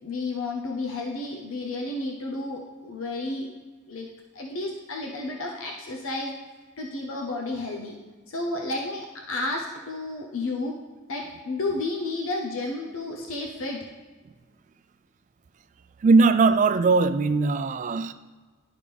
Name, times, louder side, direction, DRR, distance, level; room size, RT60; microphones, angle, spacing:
voice 1, 0.0-3.5 3.9-4.1 4.3-6.3 6.8-8.0 8.3-10.7 11.1-13.9, left 2 dB, 70° left, 0 dB, 0.8 m, -31 dB
voice 2, 16.0-18.1, right 4 dB, 35° right, 12 dB, 0.3 m, -20 dB
11.0 x 4.9 x 3.4 m, 1.4 s
head